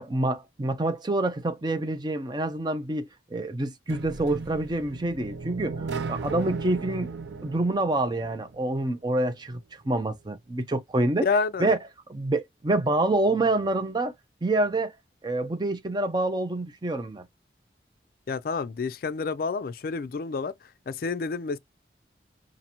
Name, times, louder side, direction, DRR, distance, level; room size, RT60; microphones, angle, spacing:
voice 1, 0.0-7.1 7.4-9.6 9.9-11.3 11.6-11.8 12.1-14.1 14.4-14.9 15.2-17.2, right 2 dB, 25° right, 0.5 m, -27 dB
sound 1, 3.9-8.8, right 4 dB, 75° right, 0.5 m, -36 dB
voice 2, 11.2-11.7 18.3-20.5 20.9-21.6, left 4 dB, 55° left, 0.3 m, -28 dB
5.4 x 2.5 x 2.9 m
head